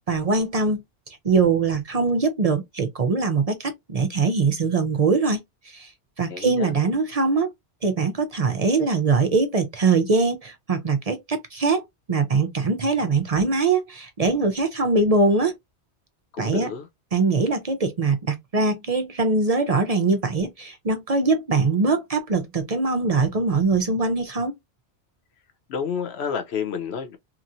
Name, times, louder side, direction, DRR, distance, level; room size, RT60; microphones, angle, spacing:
voice 1, 0.1-0.8 1.2-5.9 6.2-7.5 7.8-11.8 12.1-15.5 16.4-16.7 17.1-24.5, right 4 dB, 45° right, 0.5 m, -22 dB
voice 2, 6.3-6.7 16.3-16.9 25.7-27.2, left 6 dB, 70° left, 0.8 m, -29 dB
2.9 x 2.8 x 2.5 m
omnidirectional pair, 1.1 m